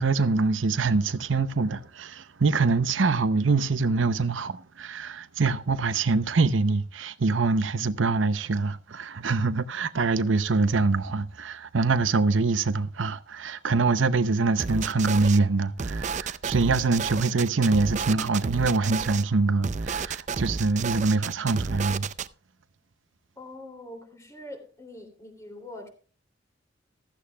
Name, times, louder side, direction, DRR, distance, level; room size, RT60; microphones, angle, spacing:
voice 1, 0.0-22.1, right 3 dB, 80° right, 0.7 m, -24 dB
sound 1, 14.6-15.4 15.8-19.2 19.6-22.3, right 5 dB, 40° right, 0.5 m, -32 dB
voice 2, 23.4-25.9, left 1 dB, 15° left, 2.9 m, -43 dB
15.0 x 13.0 x 2.3 m
head